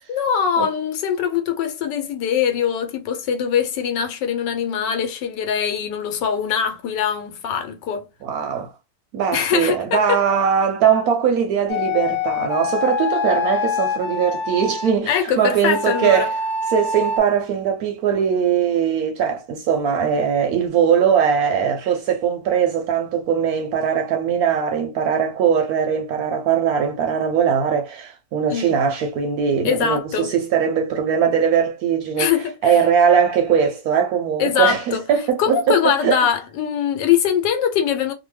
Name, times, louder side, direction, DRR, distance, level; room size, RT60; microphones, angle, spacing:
voice 1, 0.1-8.1 9.3-10.2 15.1-16.3 28.5-28.8 29.6-30.3 32.2-32.8 34.4-35.0 35.4-38.1, left 8 dB, 80° left, 1.3 m, -22 dB
voice 2, 8.2-8.7 9.1-16.3 16.7-32.3 32.6-36.2, right 7 dB, 70° right, 0.9 m, -20 dB
sound 1, 11.7-14.9 15.7-17.2, left 4 dB, 60° left, 0.6 m, -25 dB
2.9 x 2.1 x 3.1 m
omnidirectional pair, 1.9 m